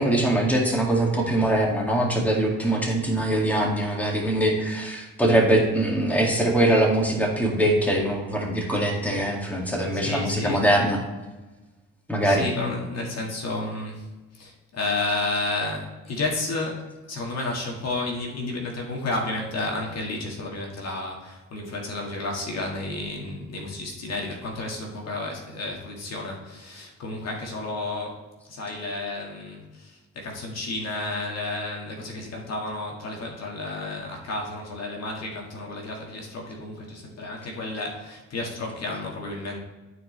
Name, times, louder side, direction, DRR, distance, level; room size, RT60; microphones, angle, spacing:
voice 1, 0.0-11.0 12.1-12.4, right 1 dB, 5° left, -1 dB, 2.0 m, -22 dB
voice 2, 9.9-10.6 12.2-14.0 14.3-28.2 28.5-39.6, left 2 dB, 60° left, 0 dB, 1.7 m, -31 dB
12.5 x 4.7 x 3.2 m, 1.2 s
cardioid pair, 90°, 30 cm